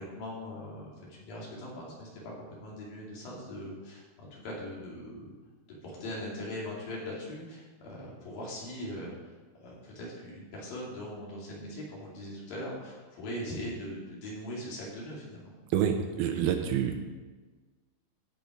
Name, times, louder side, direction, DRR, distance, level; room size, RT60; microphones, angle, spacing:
voice 1, 0.0-5.3 5.8-9.1 9.6-15.5, left 1 dB, 60° left, -4 dB, 4.3 m, -40 dB
voice 2, 15.7-17.0, right 9 dB, 75° right, 5 dB, 2.5 m, -27 dB
15.5 x 5.6 x 5.1 m, 1.3 s
omnidirectional pair, 4.6 m